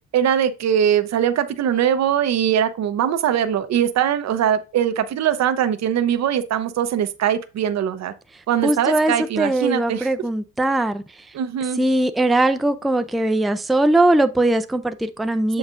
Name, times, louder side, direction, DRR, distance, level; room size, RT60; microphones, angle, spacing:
voice 1, 0.1-8.1 8.5-10.1 11.3-11.8 15.5-15.6, right 9 dB, 60° right, 0.7 m, -21 dB
voice 2, 8.6-11.0 11.8-15.6, right 1 dB, ahead, 0.4 m, -20 dB
6.9 x 5.4 x 2.5 m
cardioid pair, 90°, 30 cm